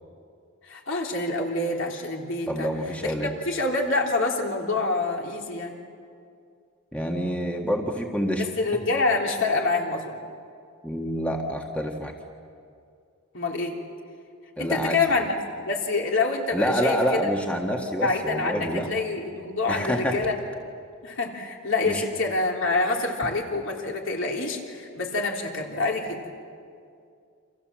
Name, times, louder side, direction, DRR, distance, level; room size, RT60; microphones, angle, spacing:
voice 1, 0.6-2.7 3.0-3.1 3.5-5.8 8.4-10.2 13.3-13.8 14.6-17.2 18.0-20.4 21.0-26.2, left 3 dB, 60° left, 0 dB, 3.5 m, -26 dB
voice 2, 2.5-3.3 6.9-8.4 10.8-12.1 14.6-15.0 16.5-18.9 19.7-20.2 21.8-22.0, equal, 5° left, 1 dB, 1.7 m, -27 dB
29.5 x 26.5 x 7.6 m, 2.4 s
head